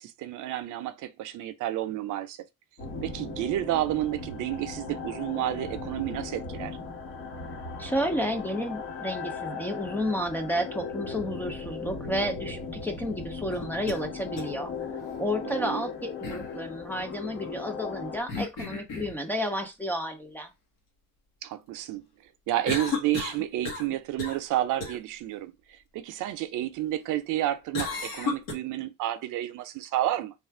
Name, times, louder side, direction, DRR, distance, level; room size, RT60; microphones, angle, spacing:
voice 1, 0.0-2.4 3.0-6.8 15.4-15.8 21.4-22.0 22.5-30.3, right 14 dB, 70° right, 0.6 m, -30 dB
sound 1, 2.8-18.2, left 4 dB, 45° left, 1.1 m, -38 dB
voice 2, 7.8-14.7 15.2-20.5, equal, 5° left, 0.4 m, -31 dB
sound 2, 13.5-14.0 14.4-14.5 16.2-16.5 18.3-19.2 22.7-23.9 24.2-24.5 24.8-25.0 27.7-28.5, left 4 dB, 75° left, 1.2 m, -33 dB
3.3 x 2.4 x 4.3 m
cardioid pair, 170°, 32 cm